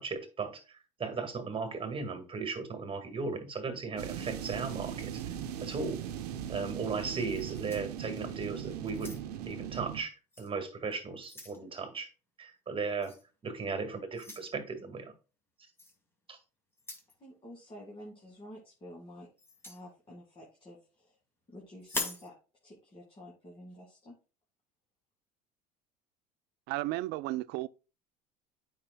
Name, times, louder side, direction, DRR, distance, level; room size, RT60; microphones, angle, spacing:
voice 1, 0.0-5.3 5.6-6.0 6.5-10.1 10.4-12.1 12.4-13.1 13.4-15.1 16.3-16.4, right 4 dB, 25° right, 1.8 m, -36 dB
sound 1, 4.0-10.0, right 10 dB, 85° right, 0.7 m, -39 dB
sound 2, 7.3-8.4 8.9-9.5 10.3-10.5 10.9-11.6 13.0-13.2 14.1-14.5 15.8-16.0 16.7-17.1 19.4-19.8 21.8-22.3, left 1 dB, 10° left, 1.8 m, -41 dB
voice 2, 17.2-19.3 19.6-21.2 21.5-22.4 22.6-24.1, equal, 30° left, 2.0 m, -50 dB
voice 3, 26.7-27.7, right 18 dB, 60° right, 0.4 m, -33 dB
8.7 x 5.5 x 2.2 m
hypercardioid pair, 80°, 19 cm